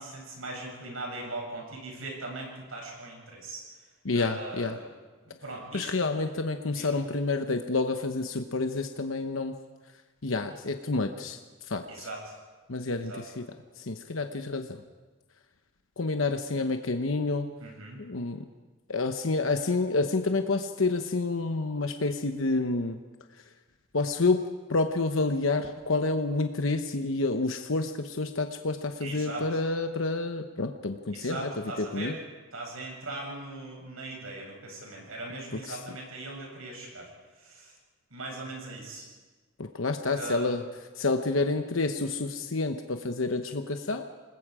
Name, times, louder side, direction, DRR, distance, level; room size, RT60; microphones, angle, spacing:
voice 1, 0.0-3.6 4.1-4.9 5.2-5.9 6.7-6.9 11.9-12.4 13.1-13.2 17.6-18.0 29.0-29.5 31.1-32.2 32.5-37.1 37.4-37.8 38.1-39.1 40.1-40.5, right 2 dB, 85° right, 0 dB, 7.6 m, -39 dB
voice 2, 4.0-4.8 5.7-9.5 10.2-11.4 11.7-12.1 12.7-13.4 13.8-14.7 16.0-17.5 18.0-18.4 18.9-23.0 23.9-24.4 24.7-31.5 31.8-32.2 35.7-35.8 39.6-40.6 41.0-44.0, left 3 dB, 75° left, 6 dB, 1.0 m, -29 dB
28.0 x 20.0 x 4.9 m, 1.3 s
head